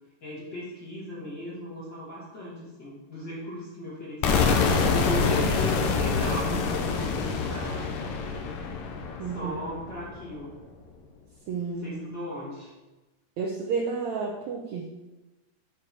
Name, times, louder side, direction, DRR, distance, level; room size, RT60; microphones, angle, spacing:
voice 1, 0.2-7.9 9.3-10.6 11.8-12.7, equal, 40° left, -8 dB, 2.3 m, -36 dB
sound 1, 4.2-10.1, left 5 dB, 85° left, 2.6 m, -26 dB
voice 2, 9.2-9.5 11.5-11.9 13.4-14.8, right 5 dB, 70° right, -1 dB, 1.8 m, -31 dB
7.5 x 4.8 x 5.9 m, 1.1 s
omnidirectional pair, 3.8 m